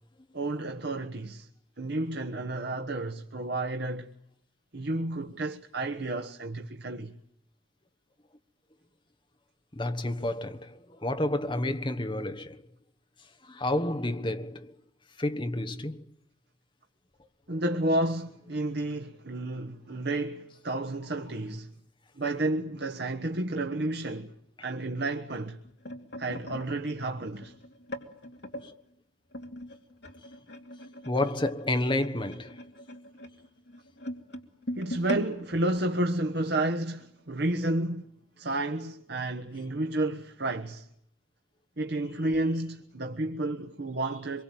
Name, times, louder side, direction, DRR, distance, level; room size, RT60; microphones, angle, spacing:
voice 1, 0.3-1.5 1.8-4.1 4.7-7.1 17.5-21.7 22.2-24.3 24.6-25.6 26.2-27.5 34.8-40.9 41.8-44.4, right 2 dB, 55° right, 1.3 m, -31 dB
voice 2, 9.7-12.6 13.4-14.7 15.2-16.1 28.6-28.7 31.0-32.6, left 1 dB, 25° left, 1.3 m, -30 dB
sound 1, 25.4-28.7 29.3-36.6 37.0-37.2 37.5-37.8 38.5-38.6, left 1 dB, 60° left, 2.7 m, -41 dB
25.5 x 23.5 x 9.0 m
head